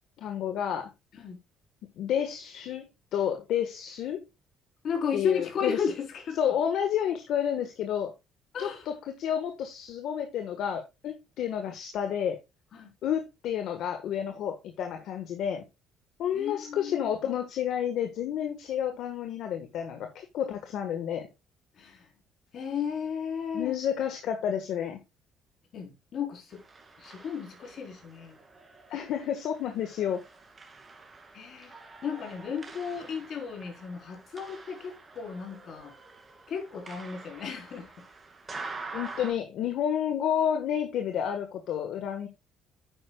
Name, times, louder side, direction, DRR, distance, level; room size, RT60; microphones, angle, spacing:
voice 1, 0.2-0.9 2.0-4.2 5.1-5.8 6.4-8.1 8.6-12.4 13.0-15.6 16.2-21.3 23.5-25.0 28.9-30.2 38.9-42.3, left 9 dB, 70° left, 1.4 m, -30 dB
voice 2, 4.8-6.5 8.5-8.9 12.7-12.9 16.3-17.1 21.8-22.1 22.5-23.8 25.7-26.6 27.0-28.4 31.3-31.8 32.0-35.9 36.5-37.9, left 6 dB, 55° left, 4.0 m, -34 dB
sound 1, 26.5-39.3, right 3 dB, 30° right, 2.5 m, -46 dB
9.7 x 9.2 x 2.3 m
cardioid pair, 95°, 0 cm